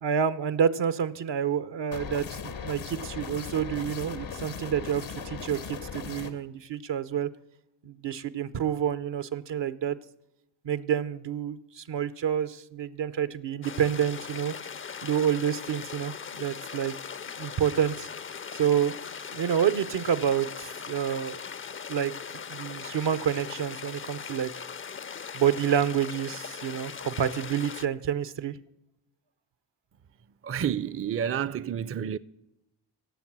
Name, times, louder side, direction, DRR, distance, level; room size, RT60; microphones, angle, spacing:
voice 1, 0.0-7.3 7.8-10.0 10.6-14.5 15.0-16.9 17.3-18.1 18.6-18.9 19.3-21.4 21.9-22.1 22.5-24.5 25.3-28.6, right 8 dB, 70° right, 0.8 m, -28 dB
sound 1, 1.9-6.3, left 6 dB, 85° left, 1.3 m, -38 dB
sound 2, 13.6-27.9, left 6 dB, 30° left, 0.4 m, -40 dB
voice 2, 30.4-32.2, right 8 dB, 30° right, 0.5 m, -29 dB
17.5 x 7.2 x 6.0 m
supercardioid pair, 45°, 44 cm